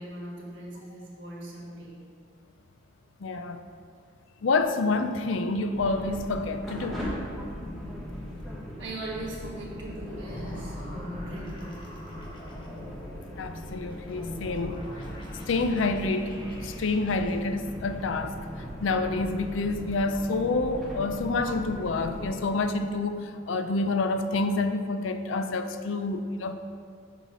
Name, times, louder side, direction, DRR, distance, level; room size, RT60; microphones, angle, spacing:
voice 1, 0.0-2.0 8.8-11.9, right 1 dB, 60° right, -4 dB, 1.6 m, -40 dB
voice 2, 3.2-3.6 4.4-7.1 13.1-14.8 15.5-18.4 18.8-26.5, left 3 dB, 70° left, 8 dB, 0.4 m, -28 dB
sound 1, 5.7-22.4, left 1 dB, ahead, 1.2 m, -39 dB
sound 2, 9.2-17.3, equal, 25° left, 1.1 m, -46 dB
7.0 x 4.2 x 6.0 m, 2.3 s
head